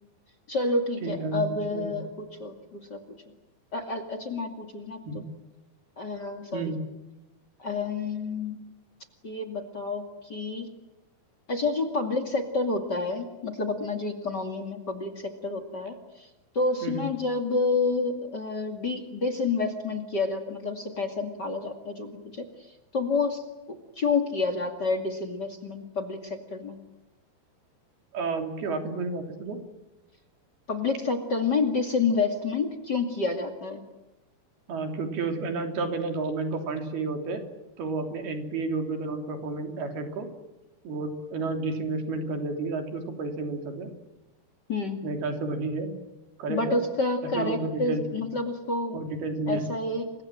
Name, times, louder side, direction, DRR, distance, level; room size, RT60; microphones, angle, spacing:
voice 1, 0.5-3.0 3.7-5.0 6.0-6.7 7.6-8.6 9.2-10.7 11.5-16.3 16.5-22.4 22.9-23.4 23.7-26.8 30.7-33.8 44.7-45.0 46.5-49.0 49.5-50.1, left 3 dB, 30° left, 9 dB, 2.4 m, -29 dB
voice 2, 1.0-2.0 5.1-5.3 6.5-6.8 16.8-17.0 28.1-29.6 34.7-37.4 37.8-40.3 40.9-43.9 45.0-45.9 46.4-46.8 47.4-48.2 48.9-49.6, right 3 dB, 85° right, 5 dB, 5.2 m, -31 dB
29.5 x 24.5 x 7.6 m, 0.99 s
omnidirectional pair, 4.3 m